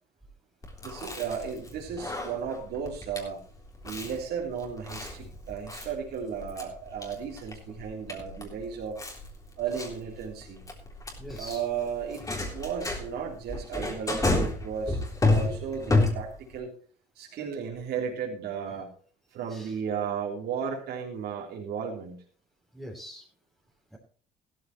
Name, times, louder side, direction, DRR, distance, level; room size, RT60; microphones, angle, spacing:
Chewing mastication, 0.6-16.6, left 2 dB, 20° left, 3.5 m, -31 dB
voice 1, 0.8-3.4 3.8-9.0 9.6-10.6 11.4-12.2 12.5-15.0 15.3-16.7 17.2-18.9 19.3-22.2, right 7 dB, 75° right, -2 dB, 3.4 m, -34 dB
voice 2, 11.2-11.6 19.5-19.8 22.7-23.2 23.9-24.0, equal, ahead, -3 dB, 3.2 m, -43 dB
15.5 x 13.5 x 3.1 m, 0.42 s
cardioid pair, 110°, 17 cm